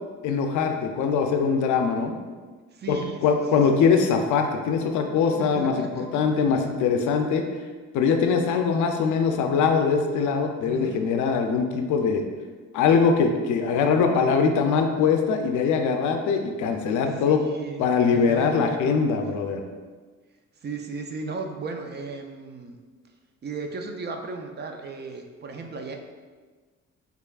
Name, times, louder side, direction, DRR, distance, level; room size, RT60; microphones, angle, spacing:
voice 1, 0.2-2.2 2.9-7.4 7.9-12.2 12.7-17.4 17.8-19.6, left 5 dB, 75° left, 5 dB, 0.5 m, -22 dB
voice 2, 2.7-4.0 5.2-6.2 10.6-11.0 17.0-18.8 20.6-22.8 23.4-26.0, right 4 dB, 35° right, 4 dB, 0.4 m, -36 dB
3.5 x 3.3 x 2.3 m, 1.4 s
cardioid pair, 90°, 30 cm